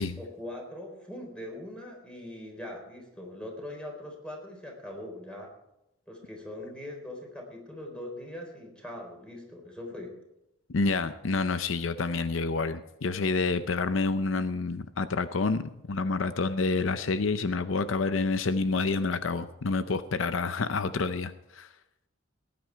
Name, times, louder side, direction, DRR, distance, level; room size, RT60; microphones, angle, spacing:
voice 1, 0.2-5.5 6.1-10.1, left 1 dB, 5° left, 1 dB, 3.8 m, -41 dB
voice 2, 10.7-21.7, left 4 dB, 70° left, 12 dB, 0.6 m, -28 dB
19.0 x 9.4 x 4.6 m, 0.88 s
head